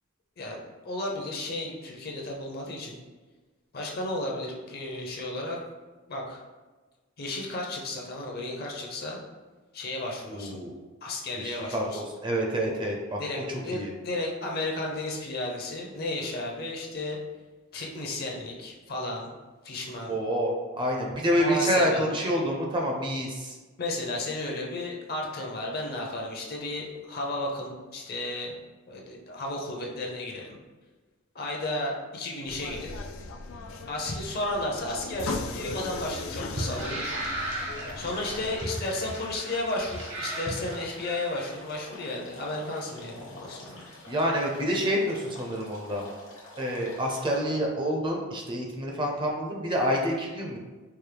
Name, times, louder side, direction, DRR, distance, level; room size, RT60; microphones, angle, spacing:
voice 1, 0.8-3.0 3.7-5.6 6.1-6.4 7.2-9.2 9.7-10.6 11.0-12.0 13.2-17.2 17.7-19.3 19.6-20.2 21.3-22.1 23.8-28.6 28.9-30.6 31.3-32.9 33.9-43.9, left 2 dB, 50° left, 0 dB, 0.7 m, -33 dB
voice 2, 10.3-10.7 11.4-13.4 13.7-13.9 20.1-23.6 44.1-46.1 46.6-50.6, equal, 25° right, 0 dB, 0.5 m, -28 dB
sound 1, 32.5-38.6, left 3 dB, 90° left, 0.4 m, -38 dB
sound 2, 35.1-41.4, right 1 dB, 60° right, 1.0 m, -36 dB
sound 3, 36.4-47.4, left 1 dB, 70° left, 1.1 m, -48 dB
4.5 x 2.1 x 3.3 m, 1.3 s
head